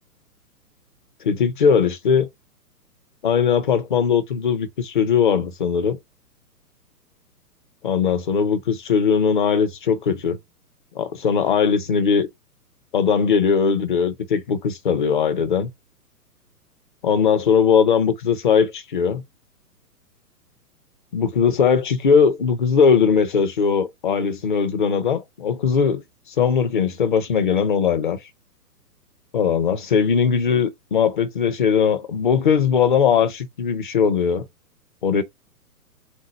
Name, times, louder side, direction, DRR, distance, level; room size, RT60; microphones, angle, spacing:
voice 1, 1.2-2.3 3.2-6.0 7.8-10.4 10.9-12.3 12.9-15.7 17.0-19.2 21.1-28.2 29.3-34.4 35.0-35.2, left 6 dB, 35° left, 0.5 m, -19 dB
3.7 x 2.7 x 4.0 m
figure-of-eight pair, 120°, 48 cm